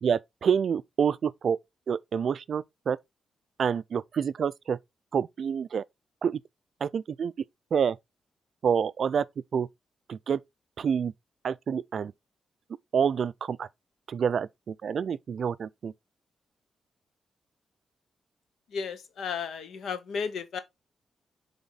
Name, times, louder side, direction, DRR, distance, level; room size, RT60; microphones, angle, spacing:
voice 1, 0.0-1.6 1.9-3.0 3.6-4.8 5.1-5.8 6.2-6.4 6.8-7.3 7.7-8.0 8.6-9.2 9.5-9.7 10.1-10.4 10.8-11.1 11.4-12.1 12.9-13.7 14.1-15.9, right 7 dB, 55° right, 0.3 m, -27 dB
voice 2, 18.7-20.6, left 6 dB, 80° left, 0.9 m, -34 dB
7.2 x 3.5 x 4.0 m
wide cardioid pair, 140°, 0 cm